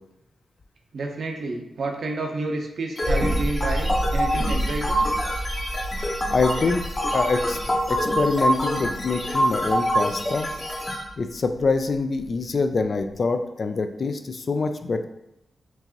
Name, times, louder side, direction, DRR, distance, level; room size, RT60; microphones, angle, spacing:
voice 1, 0.9-5.0, right 2 dB, 70° right, 2 dB, 0.7 m, -30 dB
sound 1, 3.0-11.0, equal, 30° left, 0.8 m, -26 dB
sound 2, 3.0-13.1, equal, 25° right, 0.7 m, -31 dB
voice 2, 5.9-6.8 7.1-7.6 7.9-10.5 11.2-15.0, left 4 dB, 50° left, 8 dB, 0.3 m, -25 dB
4.5 x 2.6 x 2.9 m, 0.90 s
cardioid pair, 80°, 0 cm